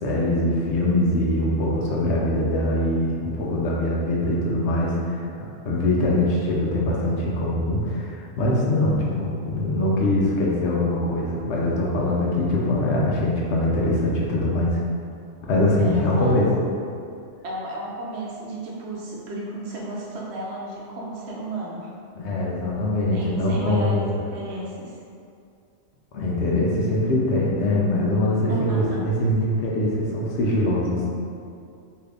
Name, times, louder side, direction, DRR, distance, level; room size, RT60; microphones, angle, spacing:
voice 1, 0.0-14.8 15.4-16.5 22.1-24.1 26.1-31.1, left 1 dB, 70° left, -4 dB, 0.9 m, -23 dB
voice 2, 15.8-16.4 17.4-21.9 23.1-24.9 28.5-29.0, right 1 dB, 70° right, -4 dB, 0.8 m, -33 dB
2.8 x 2.5 x 3.3 m, 2.4 s
omnidirectional pair, 1.2 m